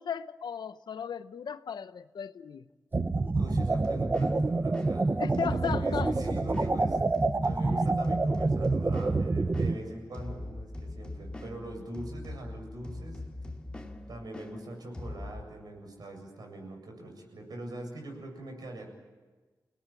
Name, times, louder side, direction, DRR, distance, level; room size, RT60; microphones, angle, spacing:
voice 1, 0.0-2.6 5.2-6.1, left 7 dB, 90° left, 0.9 m, -36 dB
sound 1, 2.9-9.7, right 3 dB, 30° right, 0.9 m, -27 dB
voice 2, 3.3-5.1 5.5-7.0 7.4-13.2 14.1-18.9, right 1 dB, 65° right, 7.9 m, -42 dB
sound 2, 3.6-15.4, left 2 dB, 15° left, 2.2 m, -42 dB
29.5 x 19.5 x 9.2 m
wide cardioid pair, 150°, 7 cm